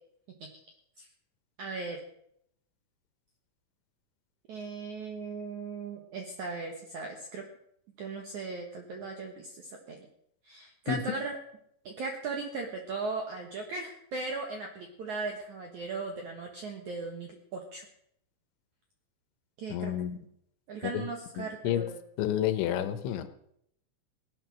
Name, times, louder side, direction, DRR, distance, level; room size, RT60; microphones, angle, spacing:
voice 1, 1.6-2.0 4.5-7.4 8.0-10.0 10.4-11.4 11.9-17.9 19.6-19.9 20.7-22.0, right 3 dB, 70° right, 3 dB, 1.8 m, -38 dB
voice 2, 19.7-20.2 20.8-21.1 21.4-21.8 22.2-23.3, left 11 dB, 80° left, 10 dB, 3.3 m, -30 dB
17.5 x 10.0 x 6.3 m, 0.73 s
omnidirectional pair, 5.4 m